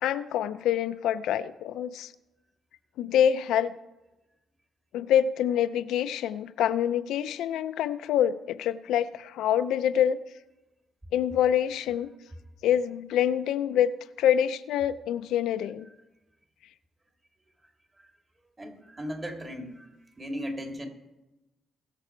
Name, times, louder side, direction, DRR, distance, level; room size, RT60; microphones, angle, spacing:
voice 1, 0.0-2.1 3.0-3.7 4.9-10.2 11.1-12.1 12.6-13.9 14.2-15.9, left 10 dB, 85° left, 13 dB, 0.5 m, -26 dB
voice 2, 17.6-18.1 18.6-19.9 20.2-20.9, equal, 20° right, 4 dB, 2.4 m, -37 dB
20.5 x 6.9 x 4.5 m, 1.0 s
cardioid pair, 90°, 0 cm